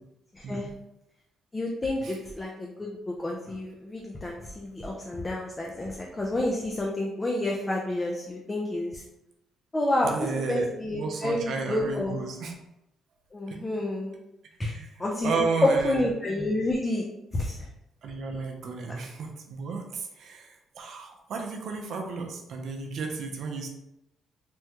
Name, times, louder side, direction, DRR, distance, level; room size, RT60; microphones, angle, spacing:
voice 1, 0.3-0.7 1.5-9.0 9.7-12.2 13.3-14.2 14.6-14.7 15.0-17.0 17.3-17.7, left 1 dB, 20° left, -1 dB, 0.5 m, -29 dB
voice 2, 10.0-10.7 10.9-12.5 13.5-13.6 14.7-16.1 18.0-23.7, right 4 dB, 70° right, 2 dB, 0.6 m, -33 dB
3.5 x 2.1 x 2.9 m, 0.85 s
cardioid pair, 90°, 0 cm